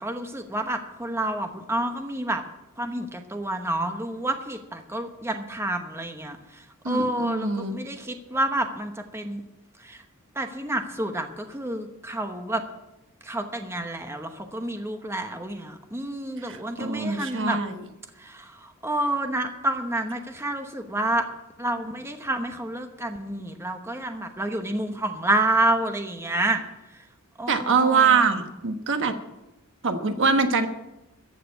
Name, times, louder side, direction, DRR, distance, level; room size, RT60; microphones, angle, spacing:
voice 1, 0.0-2.4 2.8-6.4 6.9-9.4 9.8-10.0 10.4-12.6 13.2-17.6 18.2-18.5 18.8-21.2 21.6-26.6 27.4-28.2, right 1 dB, 10° right, 6 dB, 1.0 m, -29 dB
voice 2, 6.8-7.8 16.4-17.9 27.5-29.2 29.8-30.7, right 5 dB, 60° right, 7 dB, 1.2 m, -23 dB
14.5 x 6.7 x 9.6 m, 0.98 s
head